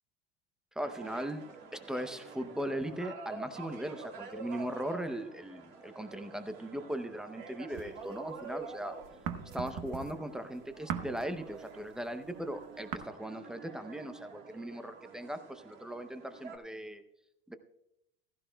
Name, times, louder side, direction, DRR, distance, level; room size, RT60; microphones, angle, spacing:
voice 1, 0.8-1.5 1.7-8.9 9.5-17.0 17.5-17.6, equal, ahead, 9 dB, 0.5 m, -39 dB
sound 1, 0.8-16.6, right 5 dB, 35° right, 2.6 m, -48 dB
sound 2, 7.7-8.6 8.9-12.9, right 8 dB, 55° right, 1.0 m, -40 dB
16.0 x 15.0 x 2.2 m, 0.83 s
supercardioid pair, 150°, 30 cm